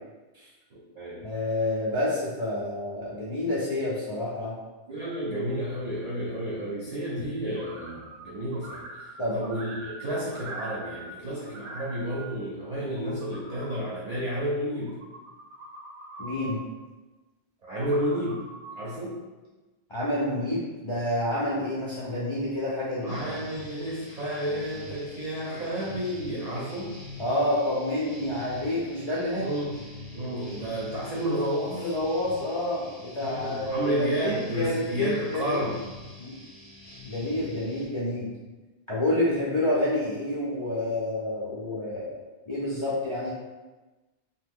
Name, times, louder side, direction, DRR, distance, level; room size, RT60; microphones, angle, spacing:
voice 1, 0.7-1.2 4.9-15.0 17.6-18.5 18.8-19.2 23.0-27.0 29.4-29.8 30.1-31.9 33.2-35.8, right 1 dB, 65° right, -5 dB, 0.4 m, -31 dB
voice 2, 1.2-4.6 9.2-9.4 16.2-16.6 19.9-23.1 27.2-29.5 31.7-35.5 36.2-36.3 37.0-38.3 38.9-42.1 42.5-43.3, left 1 dB, 50° left, -8 dB, 0.3 m, -28 dB
sound 1, 7.5-8.3 8.5-11.2 11.4-12.3 12.8-13.8 14.7-16.6 17.7-18.8, right 2 dB, 80° right, 0.9 m, -43 dB
sound 2, 23.1-37.9, left 1 dB, 20° left, 0.6 m, -45 dB
2.8 x 2.1 x 3.5 m, 1.2 s
omnidirectional pair, 1.2 m